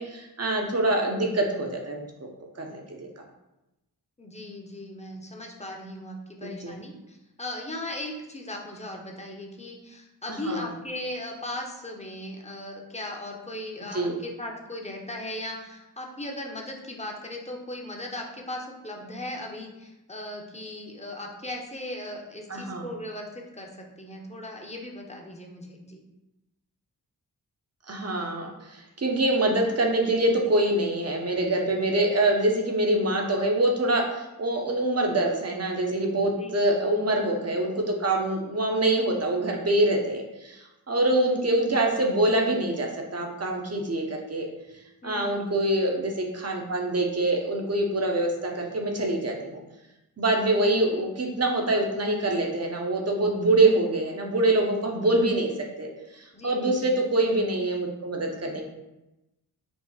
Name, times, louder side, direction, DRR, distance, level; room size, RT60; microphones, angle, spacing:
voice 1, 0.0-2.1 2.6-3.1 6.6-6.7 10.5-10.6 13.9-14.1 22.5-22.8 27.9-44.4 45.0-49.6 50.2-55.5 55.8-55.9 56.1-58.6, right 1 dB, 40° right, 1 dB, 1.0 m, -25 dB
voice 2, 4.2-26.0 36.3-36.9 45.0-45.5 56.3-56.9, left 1 dB, 15° left, 1 dB, 1.0 m, -38 dB
5.4 x 2.0 x 4.8 m, 0.96 s
cardioid pair, 50°, 38 cm